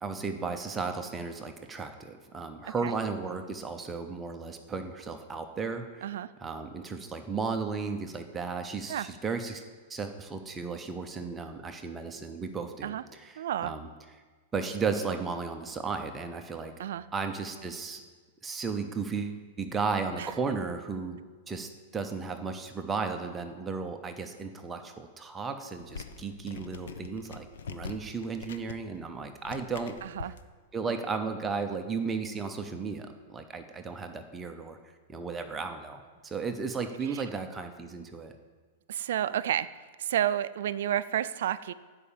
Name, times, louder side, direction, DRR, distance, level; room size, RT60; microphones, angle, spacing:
voice 1, 0.0-6.0 6.4-9.6 9.9-12.9 13.2-13.3 13.6-13.9 14.5-16.7 17.1-18.0 18.4-21.2 21.5-30.0 30.2-30.3 30.7-34.8 35.1-38.3, right 4 dB, 10° right, 5 dB, 0.6 m, -34 dB
voice 2, 13.4-13.7 16.8-17.1 20.2-20.3 30.0-30.3 37.1-37.2 38.9-39.7 40.0-41.7, right 11 dB, 60° right, 14 dB, 0.4 m, -30 dB
sound 1, 25.8-30.4, left 5 dB, 90° left, 0.8 m, -44 dB
12.5 x 4.9 x 8.6 m, 1.4 s
supercardioid pair, 175°, 0 cm